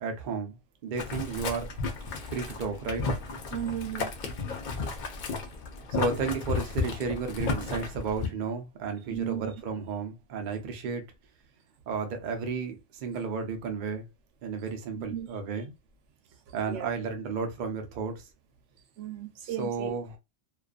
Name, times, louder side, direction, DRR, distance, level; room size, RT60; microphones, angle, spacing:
voice 1, 0.0-1.7 2.2-3.1 5.9-11.0 11.9-14.0 14.4-15.7 16.5-18.3 19.4-20.2, right 5 dB, 55° right, 0.6 m, -33 dB
Boiling, 1.0-8.3, left 4 dB, 60° left, 0.5 m, -33 dB
voice 2, 3.5-4.1 9.1-9.5 14.9-15.3 16.7-16.9 19.0-19.9, right 10 dB, 80° right, 0.9 m, -35 dB
2.4 x 2.3 x 2.3 m
omnidirectional pair, 1.2 m